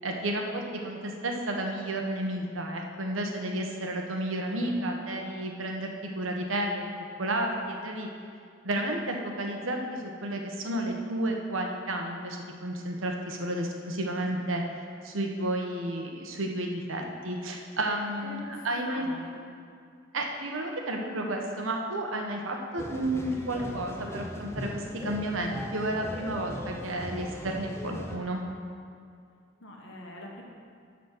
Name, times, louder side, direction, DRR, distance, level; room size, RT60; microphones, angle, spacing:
voice 1, 0.0-6.9 7.2-8.1 8.6-14.6 15.0-19.0 20.1-28.4, right 1 dB, 85° right, 2 dB, 1.1 m, -32 dB
voice 2, 4.4-5.1 18.2-19.5 29.6-30.4, left 1 dB, 65° left, -1 dB, 1.5 m, -44 dB
sound 1, 22.8-28.2, left 1 dB, 15° left, 0.6 m, -39 dB
10.5 x 4.1 x 6.6 m, 2.3 s
head